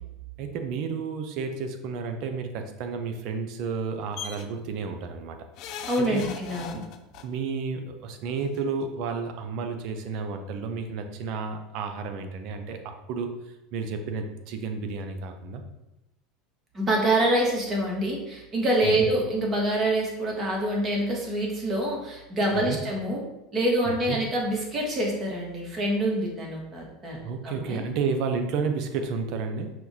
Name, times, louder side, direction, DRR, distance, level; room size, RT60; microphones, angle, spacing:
voice 1, 0.4-5.4 5.7-6.2 6.7-6.8 7.2-13.4 13.7-15.6 18.8-19.1 22.5-22.8 23.9-24.2 27.2-29.7, right 5 dB, 60° right, 6 dB, 0.5 m, -31 dB
sound 1, 4.2-4.4 5.6-7.2 8.4-8.5 8.8-8.9, left 8 dB, 55° left, 0.4 m, -38 dB
voice 2, 5.9-6.8 16.7-23.2 23.5-27.8, right 1 dB, 30° right, -2 dB, 1.3 m, -26 dB
5.8 x 2.4 x 2.7 m, 0.92 s
hypercardioid pair, 95°, 0 cm